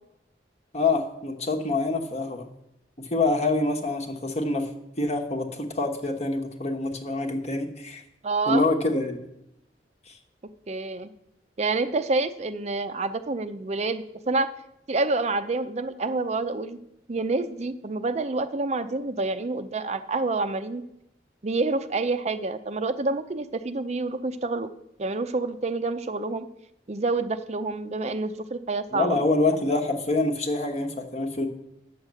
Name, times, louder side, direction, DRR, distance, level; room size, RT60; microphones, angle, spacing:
voice 1, 0.7-2.5 3.0-4.7 5.0-8.0 8.5-9.2 10.1-10.2 28.9-31.5, left 2 dB, 40° left, 3 dB, 1.2 m, -26 dB
voice 2, 8.2-8.6 10.7-11.1 11.6-14.5 14.9-16.8 17.1-20.8 21.4-24.7 25.0-26.5 26.9-29.2, right 3 dB, 40° right, 10 dB, 0.5 m, -28 dB
9.3 x 6.4 x 7.5 m, 0.82 s
head